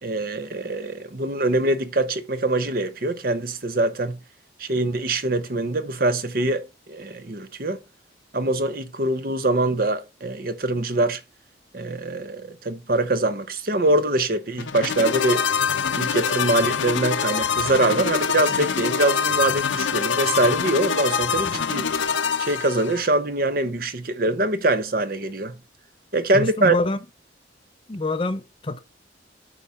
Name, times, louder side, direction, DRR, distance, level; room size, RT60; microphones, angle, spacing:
voice 1, 0.0-4.2 4.6-7.8 8.3-11.2 11.7-15.4 15.9-21.9 22.4-25.6 26.1-26.7, right 2 dB, 50° right, 0.9 m, -23 dB
sound 1, 14.6-23.1, left 6 dB, 80° left, 0.6 m, -24 dB
voice 2, 26.3-27.0 27.9-28.8, left 2 dB, 25° left, 0.6 m, -25 dB
8.5 x 4.2 x 4.8 m
head